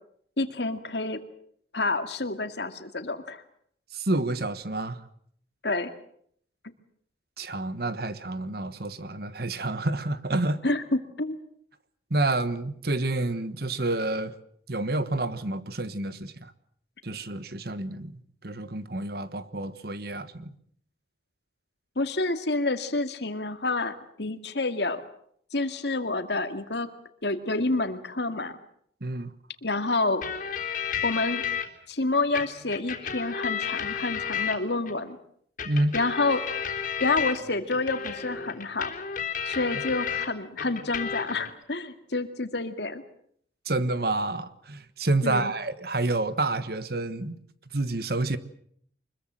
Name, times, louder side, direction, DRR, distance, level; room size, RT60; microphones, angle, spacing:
voice 1, 0.4-1.2 1.7-3.4 5.6-5.9 10.6-11.4 22.0-25.0 25.5-26.9 27.2-28.6 29.6-30.2 31.0-31.4 31.9-35.2 35.9-36.4 37.0-38.9 39.4-43.0 45.2-45.5, left 2 dB, 65° left, 2.2 m, -28 dB
voice 2, 3.9-5.0 7.4-10.6 12.1-14.4 14.7-16.5 17.0-20.5 29.0-29.3 35.6-36.0 43.6-47.4 47.7-48.4, right 2 dB, 55° right, 1.4 m, -29 dB
sound 1, 30.2-31.7 32.3-34.9 35.6-40.3 40.6-41.5, left 7 dB, 45° left, 3.6 m, -32 dB
25.0 x 21.5 x 7.7 m
head